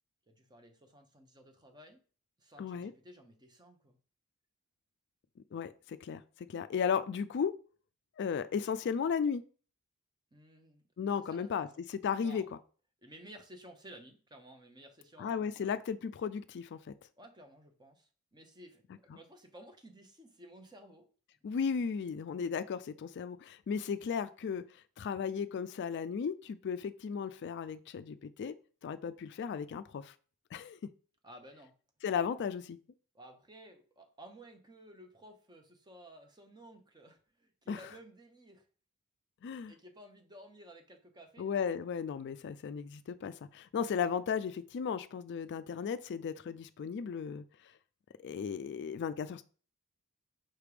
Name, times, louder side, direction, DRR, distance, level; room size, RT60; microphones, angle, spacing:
voice 1, 0.3-2.0 2.4-4.0 10.3-10.8 11.2-11.7 12.2-12.5 13.0-15.7 17.2-18.8 19.1-21.1 31.2-31.7 33.1-38.7 39.7-41.5, right 1 dB, 20° right, 5 dB, 0.9 m, -55 dB
voice 2, 2.6-2.9 5.5-6.2 6.5-7.5 8.2-9.4 11.0-12.4 15.2-16.9 21.4-28.5 28.8-30.1 30.5-30.8 32.0-32.8 37.7-37.8 39.4-39.7 41.4-47.4 48.2-49.4, left 6 dB, 50° left, 13 dB, 0.3 m, -35 dB
5.8 x 3.4 x 4.9 m, 0.39 s
head